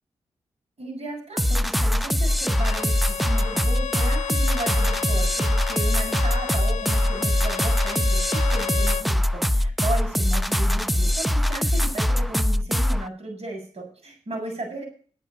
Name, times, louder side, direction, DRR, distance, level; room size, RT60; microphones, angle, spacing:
voice 1, 0.8-14.8, right 2 dB, 60° right, 1 dB, 7.6 m, -35 dB
sound 1, 1.4-13.1, left 1 dB, ahead, 0.8 m, -22 dB
Bowed string instrument, 2.3-9.1, left 8 dB, 80° left, 0.5 m, -33 dB
9.7 x 9.1 x 9.3 m, 0.42 s
cardioid pair, 45°, 12 cm